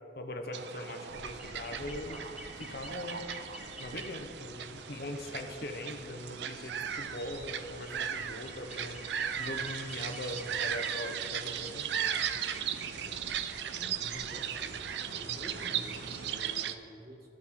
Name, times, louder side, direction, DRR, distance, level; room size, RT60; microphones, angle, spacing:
voice 1, 0.2-2.2 2.6-9.0 9.4-11.9, left 1 dB, 55° left, 5 dB, 0.8 m, -41 dB
sound 1, 0.5-16.7, right 8 dB, 70° right, 0.4 m, -37 dB
sound 2, 1.1-16.5, equal, 5° right, 1.0 m, -50 dB
voice 2, 12.9-17.3, equal, 55° right, -2 dB, 1.7 m, -49 dB
14.0 x 6.3 x 3.6 m, 2.5 s
head